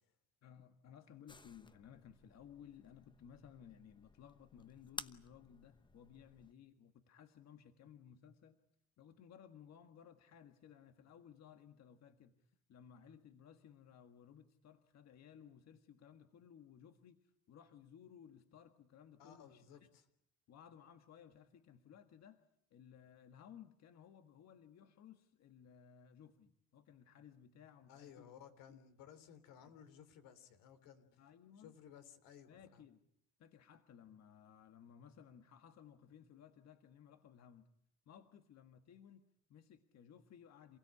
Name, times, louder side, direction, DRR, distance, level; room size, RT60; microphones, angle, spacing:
voice 1, 0.4-8.6 9.0-19.8 20.5-22.4 22.7-28.3 28.7-28.8 29.6-29.7 31.2-31.7 32.5-33.0 33.4-37.7 38.0-40.8, left 8 dB, 55° left, 7 dB, 1.7 m, -59 dB
sound 1, 1.3-6.5, left 3 dB, 15° left, 1.0 m, -55 dB
voice 2, 19.2-20.1 27.9-31.2 31.6-32.8, left 8 dB, 85° left, 10 dB, 3.6 m, -58 dB
28.5 x 16.5 x 9.8 m, 0.74 s
cardioid pair, 110°, 32 cm